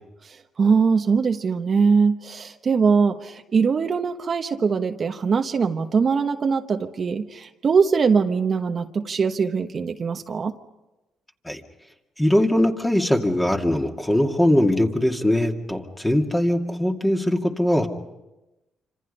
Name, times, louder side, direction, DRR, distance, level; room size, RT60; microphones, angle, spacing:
voice 1, 0.2-10.5, right 5 dB, 45° right, 6 dB, 1.1 m, -22 dB
voice 2, 12.2-17.9, left 1 dB, 10° left, 3 dB, 2.3 m, -21 dB
27.5 x 26.5 x 5.5 m, 1.0 s
cardioid pair, 90°, 0 cm